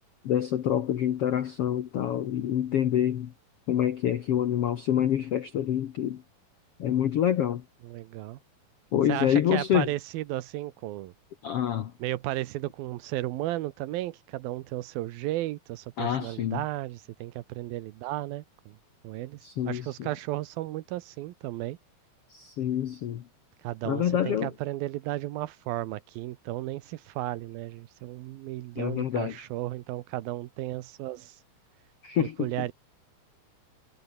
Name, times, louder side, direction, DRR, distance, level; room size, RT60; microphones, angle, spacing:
voice 1, 0.2-3.3 3.7-6.2 6.8-7.6 8.9-9.9 11.4-11.9 16.0-16.6 19.4-20.1 22.3-23.3 23.8-24.5 28.8-29.4 32.0-32.5, left 10 dB, 85° left, 1.3 m, -27 dB
voice 2, 7.8-8.4 9.1-11.1 12.0-18.8 19.0-21.8 23.6-31.4 32.2-32.7, right 16 dB, 80° right, 2.6 m, -34 dB
omnidirectional pair, 4.4 m